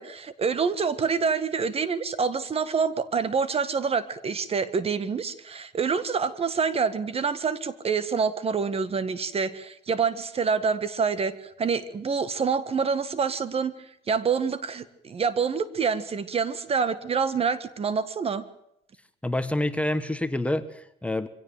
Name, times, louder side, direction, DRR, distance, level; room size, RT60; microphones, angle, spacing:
voice 1, 0.0-13.7 14.1-18.4, right 5 dB, 35° right, 15 dB, 1.7 m, -27 dB
voice 2, 19.2-21.3, left 1 dB, 5° left, 11 dB, 1.5 m, -27 dB
24.0 x 17.0 x 7.6 m, 0.77 s
cardioid pair, 110°, 17 cm